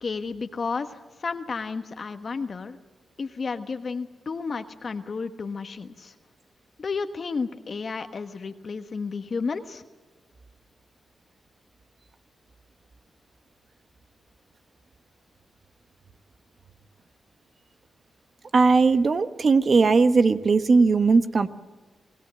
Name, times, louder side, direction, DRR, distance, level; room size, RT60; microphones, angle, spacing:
voice 1, 0.0-2.8 3.2-6.1 6.8-9.8, left 4 dB, 55° left, 7 dB, 1.3 m, -32 dB
voice 2, 18.5-21.5, right 4 dB, 55° right, 11 dB, 1.2 m, -19 dB
27.5 x 17.5 x 7.6 m, 1.3 s
cardioid pair, 50°, 0 cm